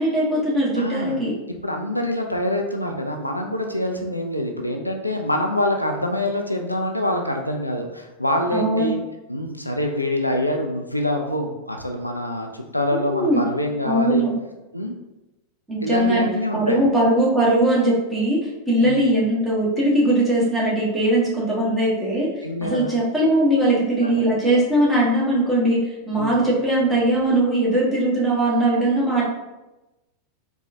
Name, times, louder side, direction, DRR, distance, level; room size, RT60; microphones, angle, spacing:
voice 1, 0.0-1.4 8.5-8.9 12.9-13.4 13.8-14.3 15.7-16.3 16.5-22.3 22.6-29.2, right 1 dB, 5° right, -7 dB, 1.2 m, -20 dB
voice 2, 0.8-1.2 1.6-9.0 9.3-14.2 14.7-14.9 15.8-16.8 18.8-19.0 22.4-22.9 24.0-24.2 26.1-26.4, left 1 dB, 85° left, 2 dB, 0.3 m, -25 dB
4.2 x 2.3 x 2.6 m, 1.0 s
figure-of-eight pair, 90°, 0 cm